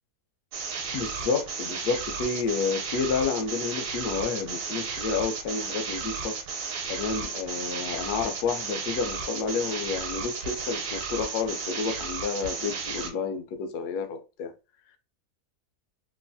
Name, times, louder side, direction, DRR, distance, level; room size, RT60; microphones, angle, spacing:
sound 1, 0.5-13.1, right 5 dB, 70° right, 1.0 m, -34 dB
voice 1, 0.9-6.4 6.9-14.5, left 5 dB, 85° left, 1.1 m, -30 dB
3.1 x 2.5 x 2.2 m
omnidirectional pair, 1.6 m